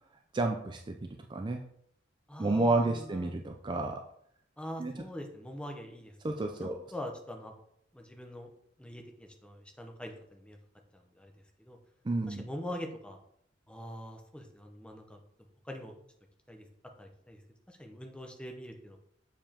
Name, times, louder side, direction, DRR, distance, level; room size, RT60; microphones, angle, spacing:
voice 1, 0.3-1.6 2.4-4.0 4.8-5.0 6.2-6.8 12.0-12.4, right 2 dB, 25° right, 4 dB, 0.4 m, -31 dB
voice 2, 2.3-3.3 4.6-6.1 6.6-7.5 7.9-8.5 8.8-10.6 10.9-11.3 11.6-11.8 12.3-13.2 13.7-15.2 15.6-15.9 16.5-16.6 17.0-17.4 17.7-19.0, equal, 5° left, 3 dB, 0.8 m, -43 dB
7.1 x 4.9 x 2.9 m, 0.71 s
head